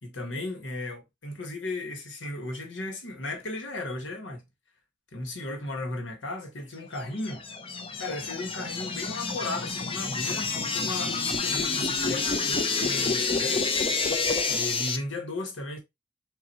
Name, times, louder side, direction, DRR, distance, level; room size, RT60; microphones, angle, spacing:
voice 1, 0.0-4.4 5.1-7.5 8.0-13.6 14.5-15.8, left 2 dB, 75° left, 1.6 m, -35 dB
sound 1, 7.0-15.0, left 4 dB, 30° left, 0.6 m, -28 dB
5.8 x 2.8 x 2.9 m
head